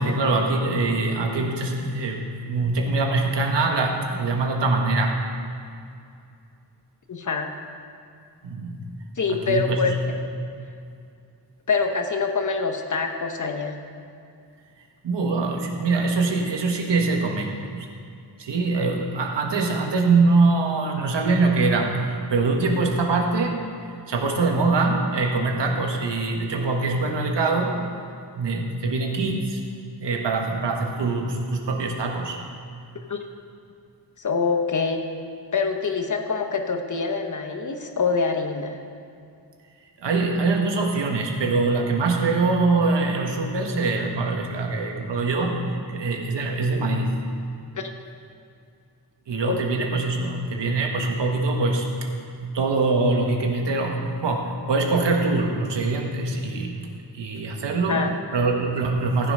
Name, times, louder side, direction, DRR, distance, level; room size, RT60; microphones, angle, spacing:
voice 1, 0.0-5.2 8.4-8.8 9.3-10.2 15.0-17.9 18.4-23.6 24.1-27.7 28.3-29.6 30.0-32.4 40.0-45.6 45.9-47.1 49.3-51.9 52.4-56.7 57.1-58.0 58.3-59.3, right 3 dB, 85° right, 2 dB, 1.5 m, -23 dB
voice 2, 7.1-7.5 9.2-10.0 11.7-13.8 33.1-33.2 34.2-35.0 35.5-38.8 47.7-47.8 49.5-49.6 57.9-58.1, left 4 dB, 45° left, 5 dB, 1.1 m, -25 dB
14.5 x 7.9 x 5.5 m, 2.5 s
wide cardioid pair, 100°, 41 cm